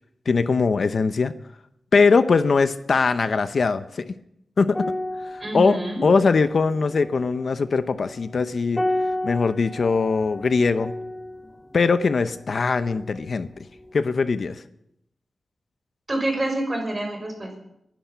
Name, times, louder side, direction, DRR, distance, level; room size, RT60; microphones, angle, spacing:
voice 1, 0.3-1.3 1.9-4.1 4.6-4.9 5.2-8.8 9.2-10.9 11.7-13.5 13.9-14.6, left 4 dB, 65° left, 11 dB, 0.8 m, -21 dB
sound 1, 4.7-13.4 13.7-13.9, left 1 dB, 10° left, 1.1 m, -33 dB
voice 2, 5.4-6.0 16.1-17.5, right 1 dB, 30° right, 3 dB, 6.1 m, -27 dB
23.0 x 10.5 x 5.7 m, 0.78 s
wide cardioid pair, 85°, 0 cm